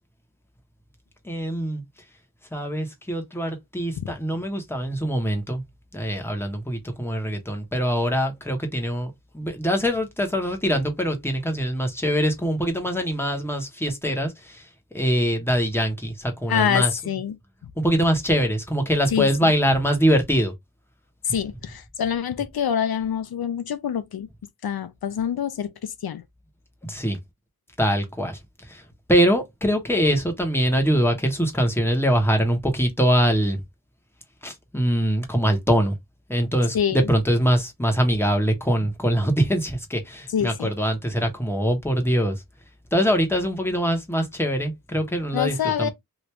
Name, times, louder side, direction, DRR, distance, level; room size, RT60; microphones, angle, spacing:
voice 1, 1.2-1.8 2.5-5.6 5.9-14.7 14.9-16.9 17.8-20.5 26.8-27.2 27.8-28.8 29.1-33.6 34.4-36.0 36.3-42.4 42.9-45.9, equal, 5° left, 1.1 m, -23 dB
voice 2, 16.5-17.4 17.6-17.7 19.1-19.5 21.2-24.3 24.6-26.2 36.7-37.1 40.3-40.7 45.3-45.9, left 8 dB, 85° left, 0.5 m, -26 dB
3.0 x 2.6 x 3.2 m
wide cardioid pair, 95°, 36 cm